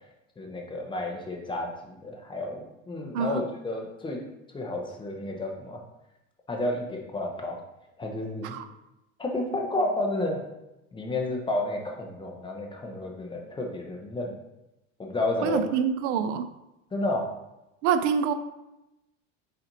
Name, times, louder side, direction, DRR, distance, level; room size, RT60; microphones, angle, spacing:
voice 1, 0.4-4.2 4.5-5.8 6.5-7.6 8.0-8.6 9.2-10.4 10.9-14.4 15.0-15.6 16.9-17.3, left 2 dB, 15° left, 1 dB, 0.7 m, -31 dB
voice 2, 15.4-16.5 17.8-18.3, right 7 dB, 70° right, 11 dB, 0.5 m, -26 dB
4.2 x 4.2 x 2.6 m, 0.93 s
supercardioid pair, 115°, 36 cm